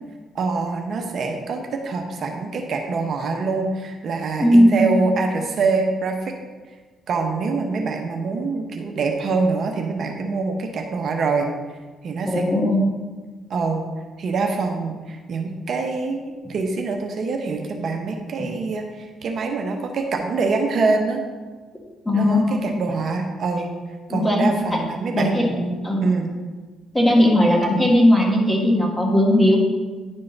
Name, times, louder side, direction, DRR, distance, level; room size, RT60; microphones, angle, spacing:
voice 1, 0.3-6.3 7.1-11.5 12.0-12.5 13.5-13.9 14.2-21.2 22.1-23.7 24.1-26.3, right 4 dB, 55° right, 2 dB, 0.8 m, -25 dB
voice 2, 4.4-4.8 12.3-12.8 22.0-22.7 24.1-24.5 25.1-25.5 25.8-26.1 26.9-29.6, left 1 dB, 10° left, -1 dB, 1.6 m, -17 dB
10.5 x 3.7 x 3.9 m, 1.4 s
cardioid pair, 90°, 0 cm